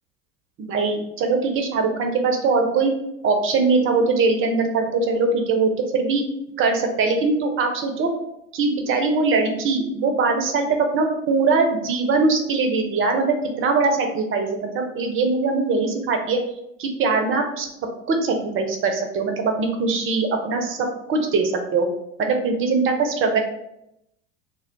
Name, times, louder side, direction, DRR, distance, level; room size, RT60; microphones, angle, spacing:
voice 1, 0.7-2.9 3.2-6.3 6.6-8.1 8.5-10.7 10.9-16.4 16.8-17.7 18.1-21.9 22.2-23.4, right 4 dB, 35° right, 4 dB, 0.6 m, -21 dB
2.3 x 2.2 x 3.8 m, 0.81 s
hypercardioid pair, 75°, 38 cm